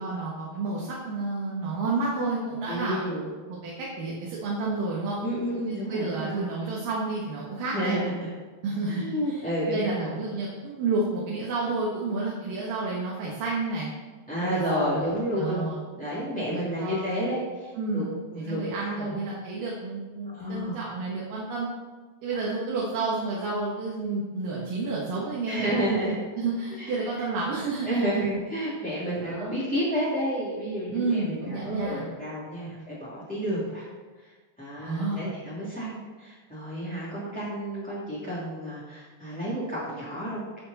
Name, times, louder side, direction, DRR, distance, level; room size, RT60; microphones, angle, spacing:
voice 1, 0.0-3.0 3.5-5.2 5.9-7.9 8.6-13.9 14.5-15.1 15.4-15.8 16.5-17.3 17.8-21.7 22.2-25.8 26.3-28.2 29.2-29.5 30.9-32.0 32.7-32.8 34.8-35.3, right 3 dB, 60° right, -5 dB, 2.9 m, -30 dB
voice 2, 2.7-3.3 5.2-6.3 7.7-8.3 8.9-10.2 14.3-15.7 16.0-18.0 18.3-19.2 20.2-20.8 22.3-22.4 25.5-26.2 26.8-26.9 27.8-33.9 34.2-34.3 34.6-40.5, equal, 5° left, -10 dB, 1.6 m, -30 dB
15.5 x 6.5 x 4.2 m, 1.3 s
omnidirectional pair, 4.8 m